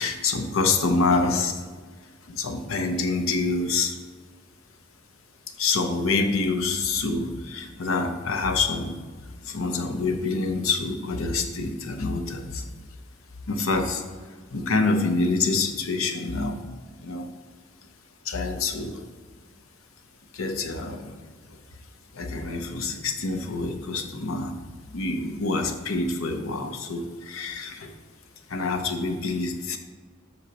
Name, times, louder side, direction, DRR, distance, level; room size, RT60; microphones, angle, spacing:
voice 1, 0.0-1.6 2.3-4.0 5.6-9.0 9.4-12.6 13.5-14.0 14.5-16.6 17.0-17.3 18.2-19.0 20.3-21.1 22.1-24.6 24.9-27.9 28.5-29.8, left 3 dB, 75° left, 6 dB, 0.8 m, -26 dB
7.9 x 5.6 x 2.9 m, 1.5 s
head